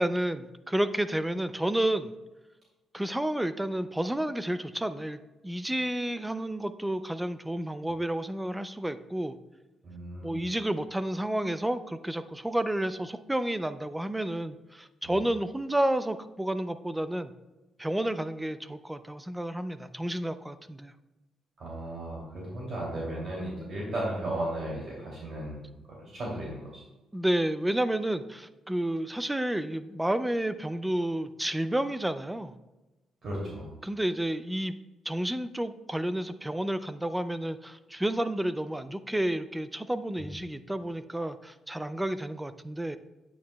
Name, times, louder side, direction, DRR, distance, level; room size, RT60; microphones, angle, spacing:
voice 1, 0.0-2.1 2.9-9.4 10.2-17.3 17.8-20.9 27.1-32.5 33.8-34.7 35.1-43.0, right 1 dB, 10° right, 12 dB, 0.5 m, -30 dB
voice 2, 9.8-10.4 15.1-15.2 21.6-26.8 33.2-33.7 40.2-40.3, right 1 dB, 55° right, -4 dB, 2.7 m, -35 dB
9.2 x 8.6 x 2.3 m, 1.1 s
cardioid pair, 90°, 0 cm